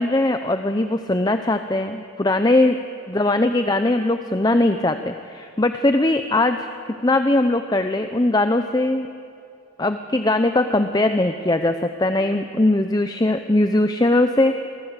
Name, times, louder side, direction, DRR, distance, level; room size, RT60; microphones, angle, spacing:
voice 1, 0.0-6.7 7.0-9.1 9.8-14.6, left 2 dB, 20° left, 8 dB, 0.7 m, -20 dB
27.0 x 19.0 x 8.2 m, 2.5 s
head